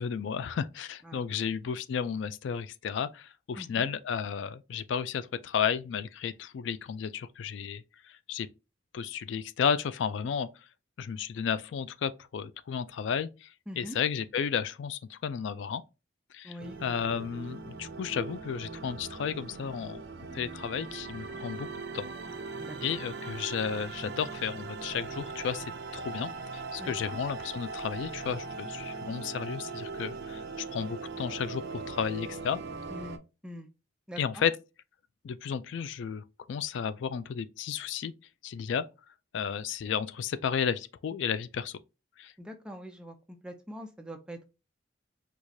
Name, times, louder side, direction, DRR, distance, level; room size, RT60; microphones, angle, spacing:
voice 1, 0.0-8.5 8.9-10.5 11.0-15.8 16.3-20.0 20.3-21.7 21.9-22.1 22.8-25.7 25.9-32.6 34.2-34.6 35.2-38.1 38.4-38.8 39.3-41.8 42.2-42.3, left 7 dB, 80° left, 0.3 m, -33 dB
voice 2, 3.6-3.9 13.7-14.0 16.4-16.8 21.3-21.5 22.6-22.8 26.8-27.2 32.9-33.7 34.1-34.5 42.4-44.5, equal, 5° right, 0.5 m, -43 dB
sound 1, 16.6-33.2, right 4 dB, 60° right, 0.5 m, -40 dB
4.6 x 2.4 x 2.6 m
head